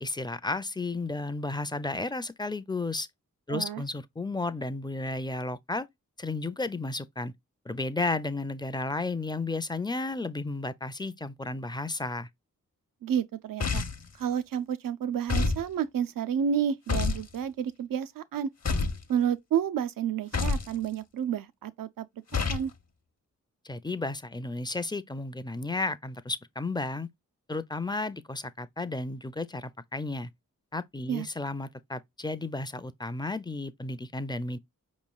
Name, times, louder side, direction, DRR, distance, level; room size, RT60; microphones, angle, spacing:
voice 1, 0.0-3.1 3.5-5.9 6.2-7.3 7.7-12.3 23.6-27.1 27.5-30.3 30.7-34.6, left 2 dB, 15° left, 0.4 m, -33 dB
voice 2, 3.5-3.8 13.0-13.8 14.2-18.5 19.1-22.1 22.3-22.7 31.1-31.3, right 8 dB, 85° right, 0.5 m, -30 dB
sound 1, 13.6-14.1 15.3-15.6 16.9-17.3 18.6-19.0 20.3-20.7 22.3-22.7, left 4 dB, 50° left, 0.8 m, -27 dB
5.0 x 3.1 x 2.2 m
cardioid pair, 40°, 33 cm